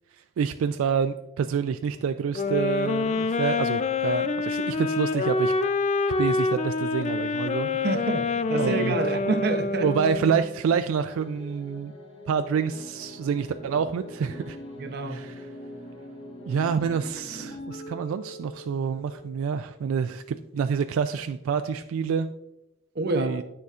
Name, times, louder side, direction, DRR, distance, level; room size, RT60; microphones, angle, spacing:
voice 1, 0.2-5.5 6.2-7.7 8.5-9.0 9.8-11.9 12.3-14.6 15.1-15.5 16.5-22.3 23.1-23.4, right 6 dB, 75° right, 0.3 m, -27 dB
sound 1, 2.3-10.5, left 4 dB, 35° left, 0.3 m, -26 dB
voice 2, 7.8-9.9 14.8-15.3 22.9-23.4, right 3 dB, 50° right, 0.7 m, -28 dB
sound 2, 11.1-19.5, equal, 60° left, 1.6 m, -42 dB
9.4 x 6.7 x 2.4 m
head